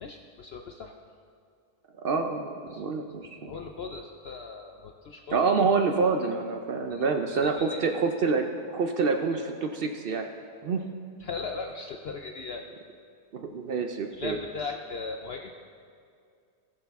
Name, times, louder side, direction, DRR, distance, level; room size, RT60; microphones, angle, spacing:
voice 1, 0.0-0.9 2.7-2.8 3.5-5.4 6.9-7.0 7.4-7.8 11.2-12.7 14.1-15.5, left 4 dB, 75° left, 4 dB, 0.5 m, -38 dB
voice 2, 2.0-3.5 5.3-10.3 10.6-10.8 13.3-14.4, right 4 dB, 80° right, 5 dB, 0.5 m, -27 dB
19.0 x 6.5 x 3.5 m, 2.3 s
omnidirectional pair, 1.7 m